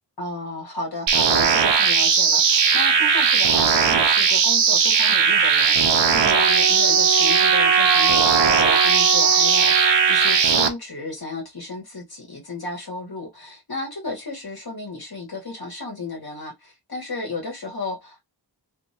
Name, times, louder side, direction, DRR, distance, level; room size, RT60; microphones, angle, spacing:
voice 1, 0.2-18.2, left 2 dB, 60° left, 1.6 m, -33 dB
sound 1, 1.1-10.7, right 6 dB, 85° right, 0.7 m, -18 dB
Wind instrument woodwind instrument, 6.2-10.5, right 5 dB, 45° right, 0.6 m, -24 dB
3.2 x 3.0 x 2.8 m
wide cardioid pair, 60°, 43 cm